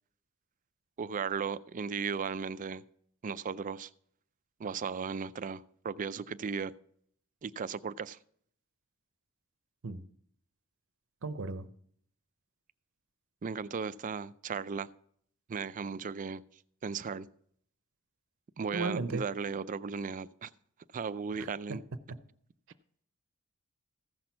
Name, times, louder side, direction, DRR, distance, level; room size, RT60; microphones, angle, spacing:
voice 1, 1.0-2.8 3.2-3.9 4.6-6.7 7.4-8.2 13.4-14.9 15.5-16.4 16.8-17.3 18.6-20.5 20.9-21.8, right 5 dB, 35° right, 0.4 m, -36 dB
voice 2, 11.2-11.6 18.7-19.2 21.4-21.5, right 3 dB, 65° right, 0.7 m, -34 dB
15.0 x 6.1 x 5.7 m
head